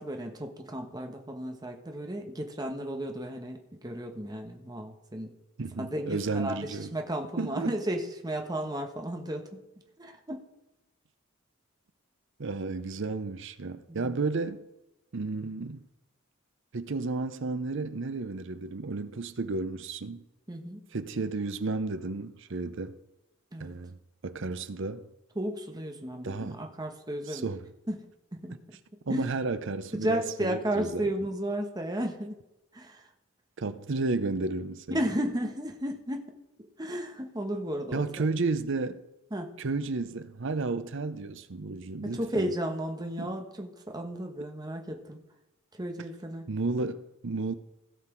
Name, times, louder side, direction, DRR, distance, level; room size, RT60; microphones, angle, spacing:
voice 1, 0.0-5.3 5.8-9.6 10.0-10.4 13.9-14.2 20.5-20.8 23.5-23.7 25.3-27.5 27.9-28.6 29.1-29.3 29.9-32.4 32.7-33.1 34.9-36.3 36.8-38.2 39.3-39.5 42.0-45.2 45.8-46.5, right 1 dB, 20° right, 1.2 m, -34 dB
voice 2, 5.6-6.9 7.4-7.8 12.4-14.7 15.1-15.8 16.7-20.2 20.9-23.0 23.6-24.0 24.2-25.1 26.2-26.6 27.3-27.6 29.1-31.1 33.6-35.0 37.9-39.0 39.6-42.5 43.2-43.3 46.5-47.5, right 3 dB, 65° right, 0.7 m, -32 dB
16.5 x 5.9 x 4.5 m
head